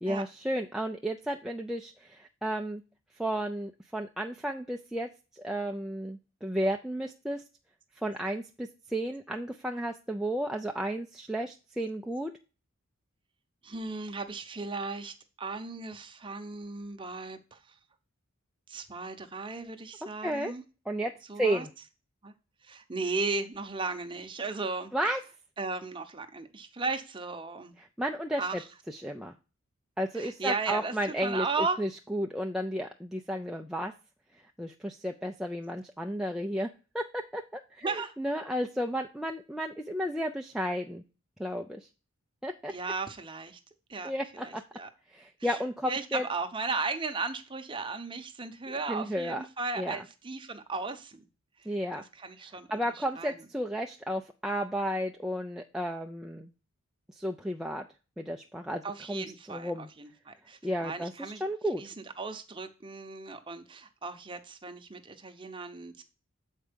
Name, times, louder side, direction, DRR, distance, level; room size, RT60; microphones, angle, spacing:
voice 1, 0.0-2.8 3.2-5.1 5.3-7.4 8.0-12.3 20.2-20.5 20.9-21.7 24.9-25.2 27.8-28.6 28.9-29.3 30.0-31.5 31.8-33.9 34.6-36.7 36.9-41.0 41.4-41.9 42.4-42.7 44.0-44.6 45.1-46.3 48.9-49.4 49.8-50.0 51.7-52.0 52.7-56.5 57.2-57.9 58.2-58.8 59.1-59.9 60.6-61.8, equal, ahead, 2 dB, 0.3 m, -33 dB
voice 2, 13.6-17.6 18.7-20.6 21.3-21.7 22.2-22.3 22.6-24.9 25.6-27.8 28.4-28.6 30.1-31.8 37.8-38.1 42.7-43.6 43.9-44.9 45.4-51.3 51.6-51.7 51.9-52.7 52.9-53.3 58.8-61.4 61.8-66.0, right 3 dB, 25° right, 6 dB, 0.8 m, -36 dB
7.4 x 4.5 x 5.1 m, 0.33 s
head